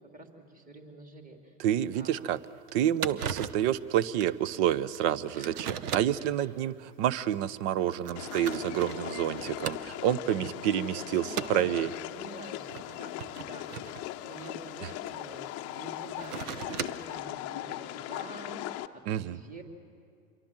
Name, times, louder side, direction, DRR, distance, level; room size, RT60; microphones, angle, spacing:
voice 1, 0.1-1.5 1.9-2.3 5.3-5.8 6.4-6.5 10.9-18.6 18.9-19.6, right 2 dB, 15° right, 2 dB, 3.2 m, -48 dB
voice 2, 1.6-2.4 2.7-11.9 14.8-14.9 19.1-19.4, right 11 dB, 45° right, 19 dB, 0.9 m, -29 dB
sound 1, 1.9-2.0 2.4-2.5 2.7-2.8 3.0-3.7 4.2-4.4 5.0-5.1 5.4-6.3 7.1-7.2 7.8-10.1 10.5-10.9 11.3-11.7 12.6-15.1 16.0-17.2, right 8 dB, 65° right, 1.2 m, -38 dB
sound 2, 8.2-18.9, left 14 dB, 30° left, 0.8 m, -39 dB
26.5 x 23.0 x 7.4 m, 2.3 s
hypercardioid pair, 105°, 49 cm